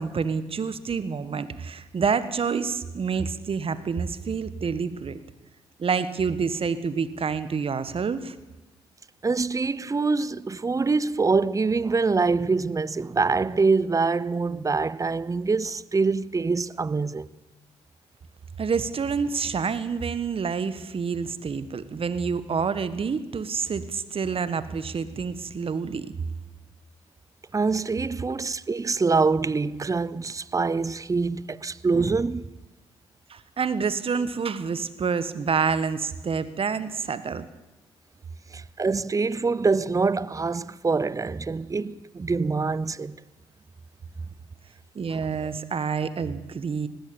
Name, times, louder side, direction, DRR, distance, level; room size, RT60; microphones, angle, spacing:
voice 1, 0.0-5.2 5.8-8.4 18.6-26.1 33.3-37.5 44.9-46.9, right 5 dB, 50° right, 1.5 m, -28 dB
voice 2, 9.2-17.3 27.5-32.5 38.5-43.2 45.1-45.2, right 4 dB, 25° right, 0.8 m, -25 dB
19.5 x 16.0 x 8.8 m
hypercardioid pair, 50°, 13 cm